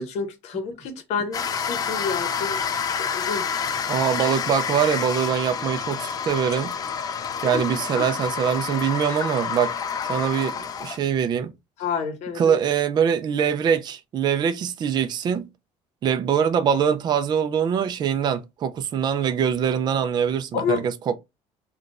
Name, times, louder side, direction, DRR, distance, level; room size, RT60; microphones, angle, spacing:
voice 1, 0.0-2.6 3.0-3.5 7.4-7.6 8.0-8.1 11.8-12.6 20.5-20.9, left 6 dB, 60° left, 0.8 m, -29 dB
sound 1, 1.3-11.0, left 6 dB, 30° left, 0.4 m, -28 dB
voice 2, 3.9-6.7 7.4-9.7 10.1-11.5 12.4-15.5 16.0-21.2, right 8 dB, 35° right, 0.4 m, -23 dB
3.7 x 2.3 x 2.4 m
cardioid pair, 135°, 13 cm